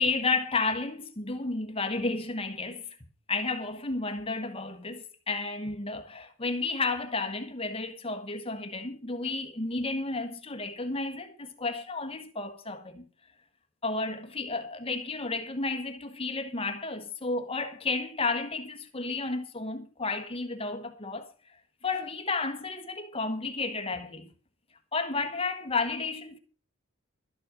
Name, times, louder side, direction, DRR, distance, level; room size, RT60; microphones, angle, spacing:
voice 1, 0.0-2.9 3.3-13.0 13.8-21.3 21.8-24.3 24.9-26.4, left 3 dB, 25° left, 1.4 m, -32 dB
13.0 x 10.0 x 5.1 m
head